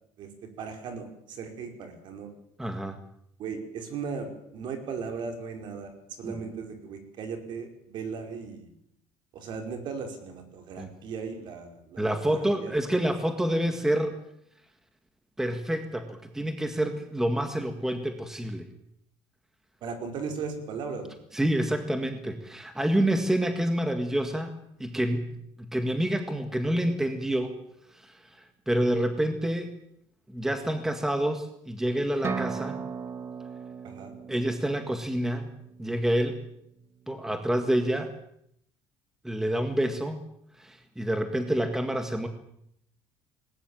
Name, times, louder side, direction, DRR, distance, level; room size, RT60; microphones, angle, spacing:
voice 1, 0.6-2.3 3.4-8.7 9.3-12.7 19.8-21.2 33.8-34.1, right 5 dB, 55° right, 5 dB, 5.1 m, -37 dB
voice 2, 2.6-3.0 6.2-6.3 10.8-10.9 12.0-14.1 15.4-18.7 21.3-27.5 27.9-29.7 30.3-32.8 34.3-35.5 35.8-36.4 37.1-38.1 39.2-40.2 40.6-42.3, right 1 dB, 5° right, 7 dB, 1.9 m, -28 dB
sound 1, 32.2-36.0, right 5 dB, 25° right, 2.2 m, -37 dB
20.0 x 19.0 x 8.9 m, 0.73 s
cardioid pair, 145°, 9 cm